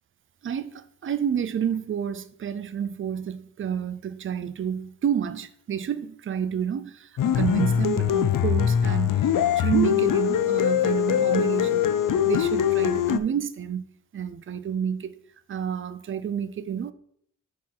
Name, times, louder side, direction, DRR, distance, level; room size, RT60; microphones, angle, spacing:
voice 1, 0.4-9.1 9.6-11.9 12.2-13.8 14.1-15.2 15.5-16.9, right 8 dB, 40° right, 0.4 m, -29 dB
sound 1, 7.2-13.2, left 10 dB, 75° left, 0.5 m, -22 dB
4.7 x 4.6 x 5.4 m
wide cardioid pair, 145°, 32 cm